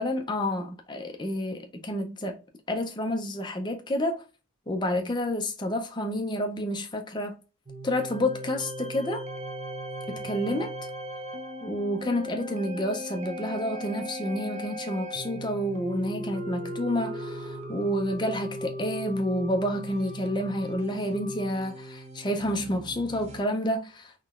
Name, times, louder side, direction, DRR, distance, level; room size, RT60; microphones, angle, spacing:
voice 1, 0.0-2.4 2.7-4.2 4.7-7.4 7.8-9.2 10.1-10.7 11.6-24.1, left 1 dB, 20° left, 0.5 m, -29 dB
sound 1, 7.7-23.4, equal, 30° right, 0.6 m, -38 dB
3.8 x 3.1 x 2.4 m
head